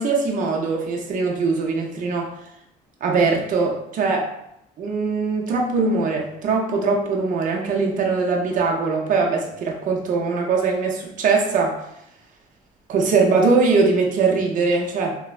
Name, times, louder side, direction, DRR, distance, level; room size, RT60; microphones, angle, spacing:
voice 1, 0.0-2.3 3.0-4.3 4.8-11.8 12.9-15.1, right 4 dB, 50° right, 1 dB, 0.6 m, -21 dB
3.0 x 2.0 x 2.4 m, 0.79 s
cardioid pair, 110°, 17 cm